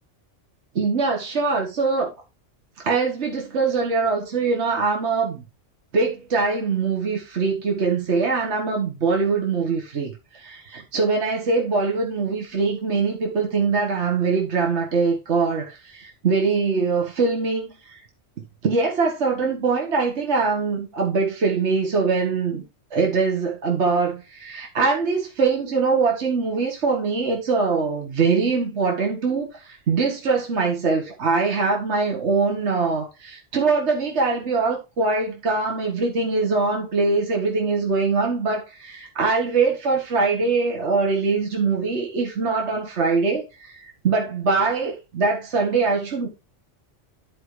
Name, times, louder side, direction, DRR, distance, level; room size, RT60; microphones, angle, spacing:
voice 1, 0.8-2.1 2.8-5.4 5.9-18.0 18.6-22.6 22.9-46.3, right 4 dB, 65° right, 1.7 m, -23 dB
12.5 x 4.8 x 3.2 m
omnidirectional pair, 1.2 m